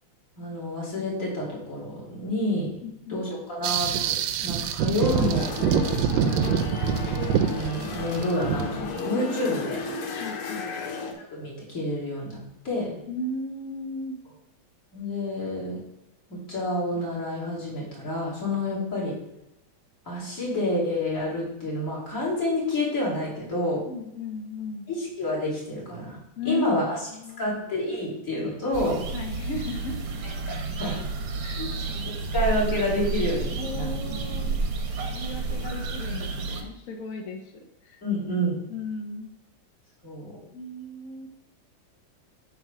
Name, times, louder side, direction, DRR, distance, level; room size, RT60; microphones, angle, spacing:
voice 1, 0.4-2.7 3.1-5.5 5.9-6.3 7.4-9.8 11.3-12.9 14.9-15.8 16.3-19.1 20.1-23.8 24.9-26.2 26.4-27.0 27.4-29.0 30.5-31.0 31.9-32.0 32.3-33.9 38.0-38.5 40.0-40.3, left 1 dB, 40° left, -6 dB, 3.1 m, -29 dB
voice 2, 2.8-3.3 9.4-9.5 10.2-10.6 13.1-14.2 23.9-24.9 26.4-26.7 27.1-27.6 29.1-30.0 31.4-31.7 33.6-34.6 35.0-38.0 38.7-39.3 40.5-41.3, left 2 dB, 60° left, 3 dB, 0.9 m, -35 dB
sound 1, 3.6-9.0, right 7 dB, 75° right, 1.2 m, -25 dB
sound 2, 5.0-11.1, left 4 dB, 85° left, 1.9 m, -33 dB
sound 3, 28.7-36.6, right 3 dB, 55° right, 1.1 m, -30 dB
7.9 x 3.4 x 6.1 m, 0.88 s
omnidirectional pair, 2.3 m